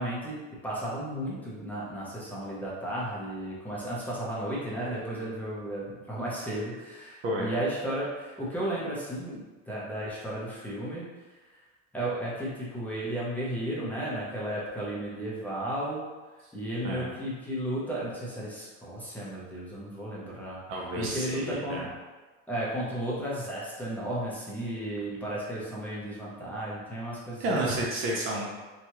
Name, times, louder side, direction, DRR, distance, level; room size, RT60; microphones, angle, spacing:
voice 1, 0.0-9.4 9.7-11.1 11.9-16.0 16.5-20.6 21.0-21.9 22.5-27.9, right 1 dB, 5° left, -7 dB, 0.6 m, -34 dB
voice 2, 20.7-21.9 27.4-28.5, right 1 dB, 40° right, -3 dB, 0.5 m, -30 dB
2.9 x 2.3 x 2.8 m, 1.3 s
supercardioid pair, 130°, 34 cm